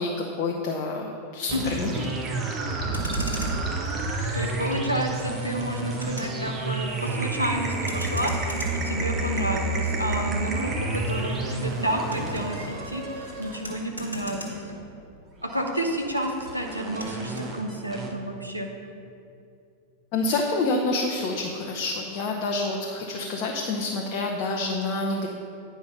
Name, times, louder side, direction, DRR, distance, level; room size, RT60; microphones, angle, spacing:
voice 1, 0.0-2.1 4.2-4.4 20.1-25.3, left 3 dB, 40° left, 0 dB, 0.8 m, -28 dB
sound 1, 1.5-14.6 15.5-18.1, right 2 dB, 25° right, 1.1 m, -30 dB
voice 2, 1.5-1.8 4.3-8.6 8.8-14.6 15.4-18.7, right 1 dB, 90° right, 1 dB, 0.9 m, -30 dB
Motor vehicle (road), 2.8-15.4 15.6-17.5, right 1 dB, 85° left, 1.4 m, -40 dB
sound 2, 5.2-13.8, right 2 dB, 55° right, 1.4 m, -44 dB
9.6 x 5.0 x 5.4 m, 2.5 s
figure-of-eight pair, 90°, 0 cm